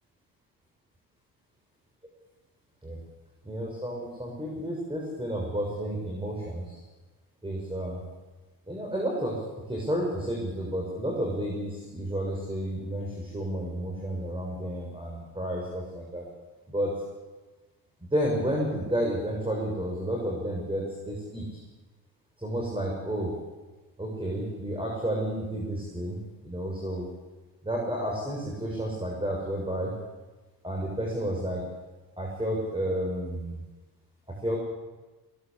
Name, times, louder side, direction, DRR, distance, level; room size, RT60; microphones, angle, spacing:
voice 1, 3.4-6.8 7.4-8.0 8.7-9.4 9.7-16.2 16.7-16.9 18.1-21.4 22.4-23.3 24.0-27.0 27.6-29.9 30.6-31.6 32.2-33.6 34.4-34.6, right 1 dB, 15° right, -2 dB, 6.9 m, -31 dB
20.0 x 19.0 x 8.6 m, 1.2 s
cardioid pair, 70°, 39 cm